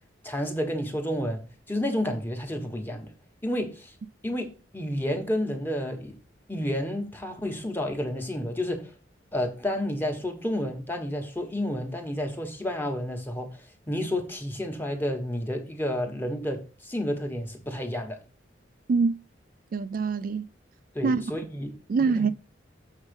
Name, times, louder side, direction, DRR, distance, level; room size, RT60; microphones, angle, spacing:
voice 1, 0.2-3.1 3.4-3.9 4.2-6.2 6.5-8.9 9.3-18.2 20.9-22.3, left 1 dB, 10° left, 1.3 m, -30 dB
voice 2, 19.7-20.5 21.0-21.2 21.9-22.3, right 4 dB, 45° right, 0.3 m, -24 dB
7.2 x 5.3 x 5.2 m
head